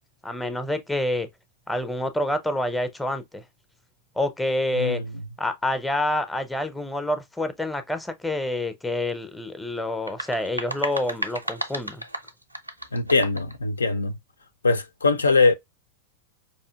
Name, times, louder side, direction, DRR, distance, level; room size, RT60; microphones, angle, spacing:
voice 1, 0.2-1.3 1.7-3.4 4.2-5.0 5.4-12.0, left 1 dB, 5° left, 0.6 m, -27 dB
sound 1, 9.9-13.6, right 1 dB, 85° right, 0.4 m, -33 dB
voice 2, 12.9-14.1 14.6-15.5, left 3 dB, 75° left, 0.4 m, -21 dB
4.8 x 2.7 x 2.3 m
figure-of-eight pair, 90°, 0 cm